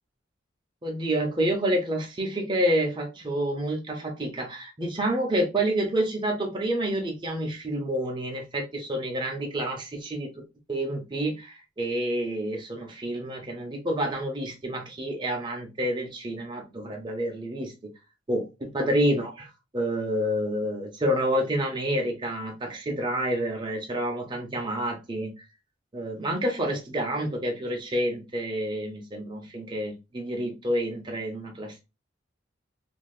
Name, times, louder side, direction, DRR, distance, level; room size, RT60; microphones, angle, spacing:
voice 1, 0.8-10.4 10.7-17.7 18.3-19.5 19.7-25.3 25.9-31.8, right 1 dB, 25° right, 0.6 m, -28 dB
3.3 x 2.6 x 2.3 m
head